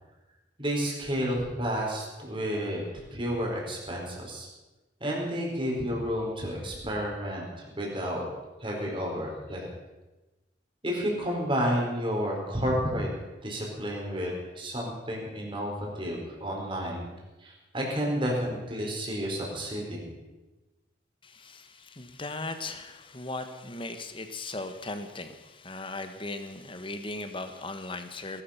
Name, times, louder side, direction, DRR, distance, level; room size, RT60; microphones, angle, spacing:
voice 1, 0.6-2.8 3.1-4.5 5.0-8.2 8.6-9.7 10.8-13.1 13.4-17.1 17.4-20.1, equal, 30° right, -1 dB, 4.6 m, -31 dB
voice 2, 21.2-28.4, left 2 dB, 30° left, 8 dB, 1.4 m, -38 dB
19.0 x 12.0 x 5.9 m, 1.1 s
head